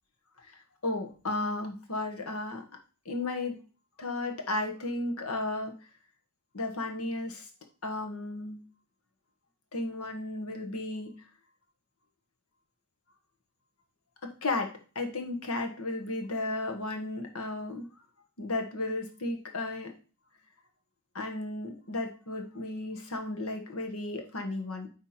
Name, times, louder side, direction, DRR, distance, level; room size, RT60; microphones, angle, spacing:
voice 1, 0.4-2.6 3.0-3.6 4.0-5.7 6.5-7.5 7.8-8.6 9.7-11.1 14.2-17.9 18.4-19.9 21.1-24.9, left 2 dB, 90° left, 4 dB, 1.5 m, -34 dB
9.6 x 3.5 x 4.3 m, 0.35 s
head